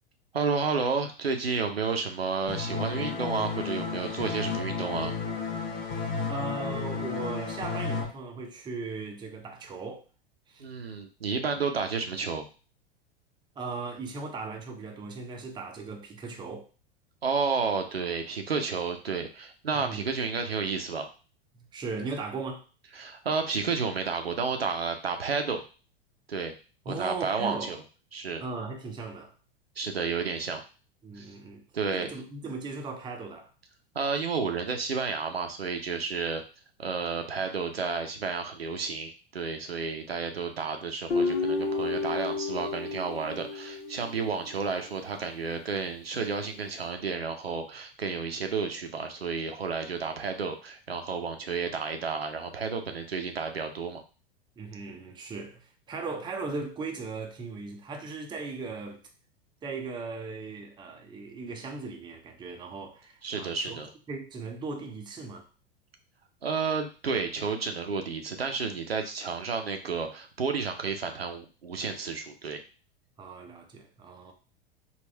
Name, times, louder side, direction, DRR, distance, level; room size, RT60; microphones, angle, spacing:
voice 1, 0.3-5.1 10.6-12.4 17.2-21.1 23.0-25.6 26.3-26.5 26.9-27.8 28.1-28.4 29.8-30.6 31.1-31.3 31.7-32.1 33.9-36.4 36.8-54.0 63.2-63.9 66.4-72.6, right 5 dB, 85° right, 0.6 m, -31 dB
sound 1, 2.5-8.0, left 5 dB, 35° left, 1.0 m, -32 dB
voice 2, 5.9-10.1 10.5-10.6 13.6-16.7 19.7-20.0 21.5-22.6 26.9-27.7 28.4-29.3 31.0-31.6 31.9-33.5 54.6-59.0 59.6-63.8 64.1-65.5 73.2-74.3, right 3 dB, 15° right, 0.6 m, -38 dB
Guitar, 41.1-44.4, left 3 dB, 65° left, 1.0 m, -31 dB
3.5 x 2.4 x 3.3 m
figure-of-eight pair, 90°, 29 cm